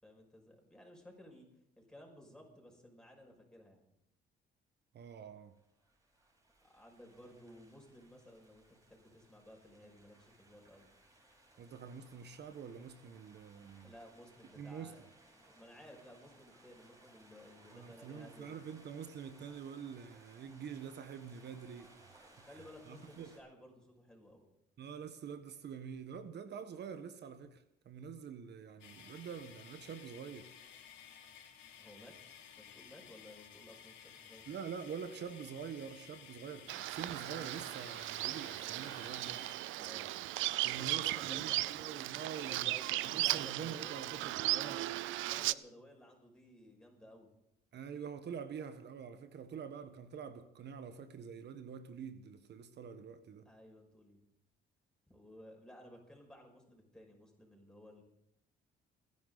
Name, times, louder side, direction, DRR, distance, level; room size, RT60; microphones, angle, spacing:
voice 1, 0.0-1.5 1.8-3.8 6.6-10.9 13.8-15.0 15.4-18.6 22.3-24.5 31.8-32.1 32.6-34.5 39.8-40.1 40.7-41.9 42.4-44.9 45.2-47.3 53.4-54.2 55.1-58.0, left 1 dB, 5° left, 6.1 m, -56 dB
voice 2, 4.9-5.5 11.6-13.9 14.5-15.0 17.7-23.3 24.8-30.5 34.5-39.5 40.6-44.9 47.7-53.5, right 7 dB, 60° right, 1.3 m, -46 dB
sound 1, 5.4-23.4, right 2 dB, 15° right, 6.9 m, -64 dB
sound 2, 28.8-39.5, left 8 dB, 80° left, 3.1 m, -56 dB
Bird vocalization bird call bird song, 36.7-45.5, right 16 dB, 80° right, 0.5 m, -37 dB
29.0 x 11.0 x 4.0 m
cardioid pair, 90°, 20 cm